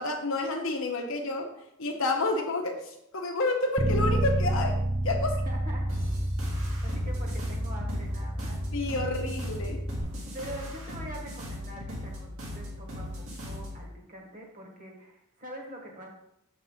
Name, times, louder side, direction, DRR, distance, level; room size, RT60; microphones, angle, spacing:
voice 1, 0.0-1.5 1.8-5.3 8.7-9.8, left 2 dB, 60° left, 2 dB, 0.8 m, -30 dB
Bass guitar, 3.8-10.0, right 1 dB, 10° right, 0.7 m, -29 dB
voice 2, 5.4-5.8 6.8-8.6 10.3-13.1 13.4-16.1, equal, 35° right, 0 dB, 1.7 m, -44 dB
sound 1, 5.9-13.8, left 1 dB, 65° right, 2.2 m, -38 dB
7.2 x 5.9 x 3.9 m, 0.79 s
head